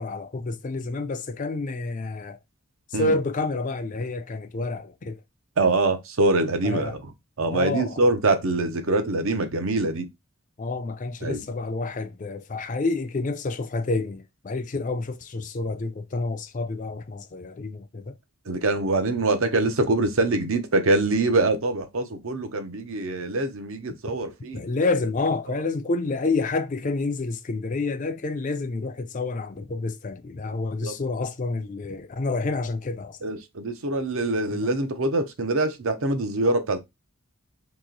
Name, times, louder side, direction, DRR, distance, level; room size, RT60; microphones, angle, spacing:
voice 1, 0.0-2.4 2.9-5.2 6.6-7.0 7.5-8.0 10.6-18.1 24.5-33.2 34.5-34.7, left 3 dB, 35° left, 0.4 m, -29 dB
voice 2, 5.6-7.0 7.4-10.1 11.2-11.4 18.5-24.6 25.5-25.6 30.8-30.9 33.2-36.8, right 2 dB, 65° right, 0.7 m, -24 dB
3.0 x 2.9 x 3.8 m
head